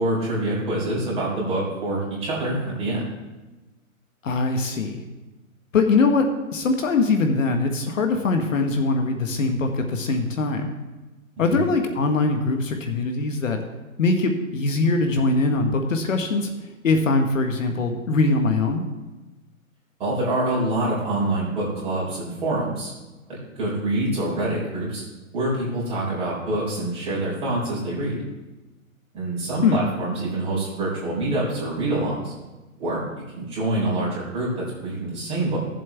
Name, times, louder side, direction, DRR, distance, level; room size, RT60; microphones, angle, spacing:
voice 1, 0.0-3.1 11.4-11.6 20.0-22.9 23.3-25.0 25.3-28.2 29.1-32.3 32.8-33.0 33.3-35.6, right 1 dB, 15° right, -7 dB, 3.8 m, -26 dB
voice 2, 4.2-5.0 5.7-10.7 11.4-13.6 14.0-18.8 29.6-29.9, left 3 dB, 65° left, 5 dB, 1.5 m, -22 dB
15.5 x 7.6 x 3.4 m, 1.1 s
hypercardioid pair, 155°, 42 cm